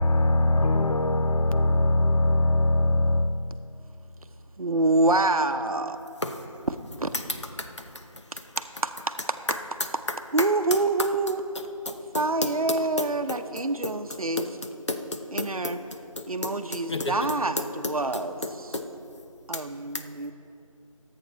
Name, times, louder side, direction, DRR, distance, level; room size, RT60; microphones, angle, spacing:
voice 1, 0.0-3.6, left 2 dB, 75° left, 0.6 m, -22 dB
voice 2, 4.6-6.0 7.0-7.1 8.6-9.1 10.3-14.5 15.3-15.8 16.3-18.3 19.5-20.3, right 2 dB, 90° right, 0.7 m, -26 dB
voice 3, 7.1-8.5 9.5-9.9 10.4-10.5 11.0-11.1 11.5-13.4 13.8-13.9 14.4-15.8 16.2-18.8 19.5-19.6 19.9-20.0, left 2 dB, 55° left, 0.9 m, -33 dB
22.0 x 8.3 x 3.1 m
figure-of-eight pair, 175°, 18 cm